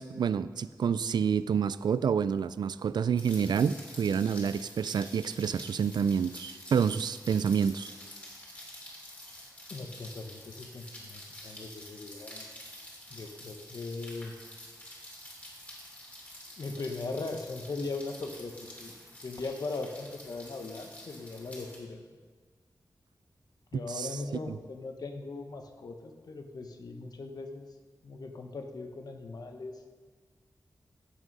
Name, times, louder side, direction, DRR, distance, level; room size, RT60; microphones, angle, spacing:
voice 1, 0.0-7.9 23.9-24.1 24.5-24.6, right 7 dB, 80° right, 15 dB, 0.3 m, -28 dB
Rain, 3.2-21.8, left 1 dB, 20° left, 2.8 m, -48 dB
voice 2, 9.7-12.5 13.1-14.3 16.6-22.0 23.7-27.7 28.0-29.8, left 3 dB, 65° left, 5 dB, 1.1 m, -39 dB
15.0 x 6.3 x 5.4 m, 1.5 s
wide cardioid pair, 120°, 7 cm